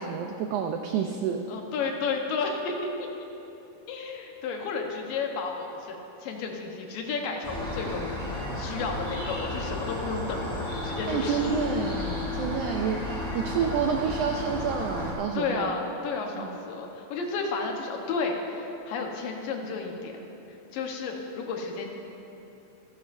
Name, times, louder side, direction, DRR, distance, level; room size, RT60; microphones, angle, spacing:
voice 1, 0.0-1.5 11.1-15.7 16.3-16.5, right 6 dB, 85° right, 4 dB, 1.7 m, -29 dB
voice 2, 1.5-3.1 3.9-11.7 15.3-20.1 20.7-21.9, left 4 dB, 75° left, 2 dB, 2.7 m, -32 dB
sound 1, 7.4-15.1, left 2 dB, ahead, 2.3 m, -33 dB
26.5 x 11.0 x 2.6 m, 2.9 s
omnidirectional pair, 4.2 m